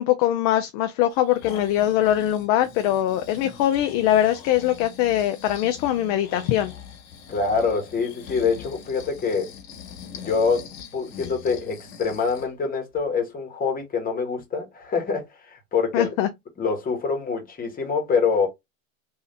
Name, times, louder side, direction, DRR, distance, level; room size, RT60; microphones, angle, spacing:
voice 1, 0.0-6.7 15.9-16.3, left 12 dB, 45° left, 0.5 m, -22 dB
Breathing, 1.1-12.5 13.0-13.1, left 7 dB, 70° left, 1.3 m, -42 dB
voice 2, 7.3-9.5 10.1-16.1 16.6-18.5, left 5 dB, 20° left, 1.3 m, -25 dB
3.2 x 2.7 x 2.6 m
hypercardioid pair, 110°, 41 cm